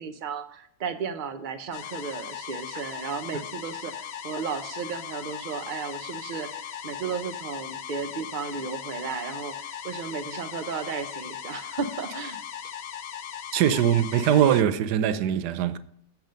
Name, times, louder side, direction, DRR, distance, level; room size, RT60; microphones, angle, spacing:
voice 1, 0.0-12.4, right 6 dB, 50° right, 0.6 m, -34 dB
sound 1, 1.7-14.6, left 9 dB, 80° left, 1.4 m, -38 dB
voice 2, 13.5-15.8, right 10 dB, 75° right, 1.2 m, -22 dB
8.1 x 7.2 x 5.2 m
omnidirectional pair, 1.8 m